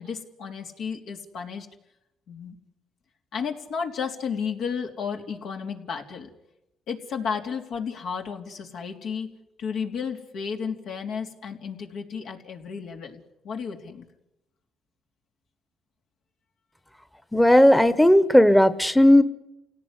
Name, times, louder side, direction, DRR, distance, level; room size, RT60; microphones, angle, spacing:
voice 1, 0.0-1.7 2.3-2.6 3.3-6.3 6.9-9.3 9.6-14.0, left 6 dB, 80° left, 2 dB, 3.4 m, -33 dB
voice 2, 17.3-19.2, left 1 dB, 5° left, 12 dB, 1.1 m, -16 dB
28.5 x 17.5 x 10.0 m, 0.92 s
cardioid pair, 90°, 0 cm